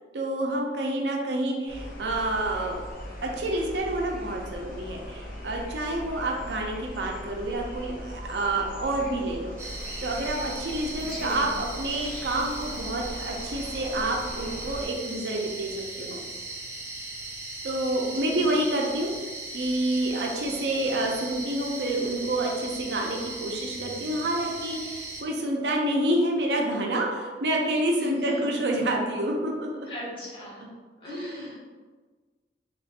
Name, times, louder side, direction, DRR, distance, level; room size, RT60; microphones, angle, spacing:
voice 1, 0.1-2.8 3.2-15.7 16.0-16.2 17.6-19.1 19.5-29.9 31.0-31.5, right 1 dB, 70° right, 0 dB, 0.6 m, -28 dB
sound 1, 1.7-14.9, equal, 50° left, 0.7 m, -40 dB
sound 2, 9.6-25.2, right 2 dB, 15° right, 0.4 m, -38 dB
voice 2, 11.0-11.5 18.0-18.4 28.0-28.5 29.8-30.7 31.0-31.6, left 1 dB, 30° left, -6 dB, 1.0 m, -37 dB
4.0 x 3.0 x 2.5 m, 1.4 s
head